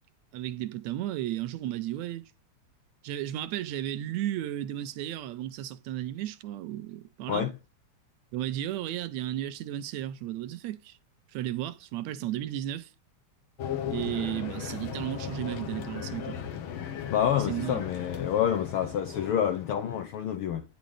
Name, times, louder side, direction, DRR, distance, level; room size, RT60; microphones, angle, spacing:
voice 1, 0.3-2.2 3.0-7.5 8.3-11.0 11.3-12.9 13.9-16.5 17.5-17.8, right 13 dB, 80° right, 1.8 m, -34 dB
sound 1, 13.6-20.2, left 8 dB, 60° left, 1.4 m, -37 dB
voice 2, 17.1-20.6, left 9 dB, 80° left, 1.2 m, -28 dB
9.8 x 5.1 x 3.3 m
omnidirectional pair, 3.4 m